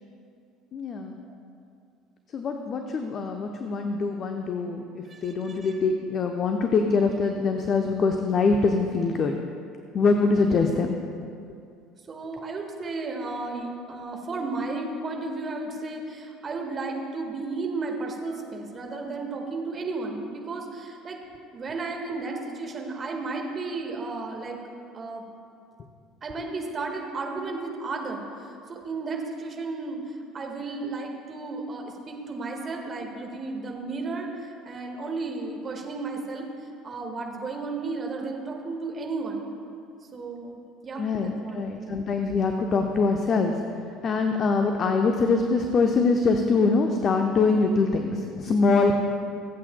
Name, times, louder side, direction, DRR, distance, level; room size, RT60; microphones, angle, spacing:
voice 1, 0.7-1.2 2.3-9.4 9.9-11.0 41.0-43.5 44.0-48.9, left 4 dB, 40° left, 4 dB, 0.7 m, -24 dB
voice 2, 5.1-5.7 12.1-21.2 21.5-24.6 24.9-25.2 26.2-39.5 40.1-42.0, right 3 dB, 35° right, 2 dB, 1.7 m, -34 dB
24.0 x 8.3 x 2.2 m, 2.4 s
figure-of-eight pair, 60°, 0 cm